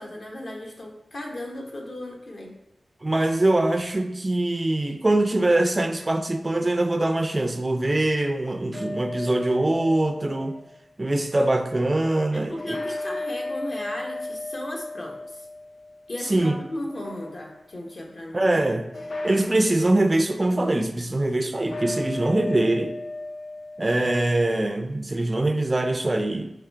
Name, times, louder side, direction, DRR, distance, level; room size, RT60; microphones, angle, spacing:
voice 1, 0.0-2.5 12.3-15.4 16.1-18.5, left 1 dB, 55° left, 0 dB, 0.9 m, -36 dB
voice 2, 3.0-10.6 11.0-12.8 16.3-16.5 18.3-18.9 19.2-23.0 23.8-26.5, right 2 dB, 30° right, 6 dB, 0.3 m, -23 dB
sound 1, 8.7-10.8 12.6-16.3 16.8-17.8 18.9-20.1 21.5-24.3, left 2 dB, 70° left, 0.5 m, -35 dB
4.8 x 3.1 x 3.3 m, 0.84 s
wide cardioid pair, 95°, 0 cm